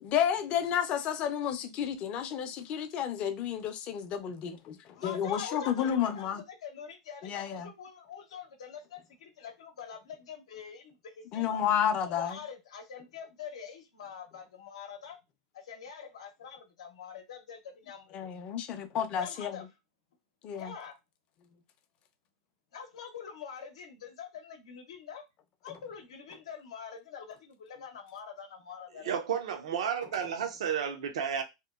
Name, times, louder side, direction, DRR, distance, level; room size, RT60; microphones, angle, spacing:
voice 1, 0.0-6.4 7.2-7.7 11.3-12.4 18.1-19.7 20.4-20.7 25.7-25.8, left 9 dB, 40° left, 0.4 m, -31 dB
voice 2, 5.0-11.7 12.0-15.2 15.5-18.2 19.2-19.6 20.6-21.0 22.7-25.2 25.6-29.1, left 7 dB, 90° left, 0.7 m, -45 dB
voice 3, 29.0-31.4, right 8 dB, 85° right, 0.5 m, -32 dB
2.8 x 2.1 x 2.3 m
supercardioid pair, 130°, 3 cm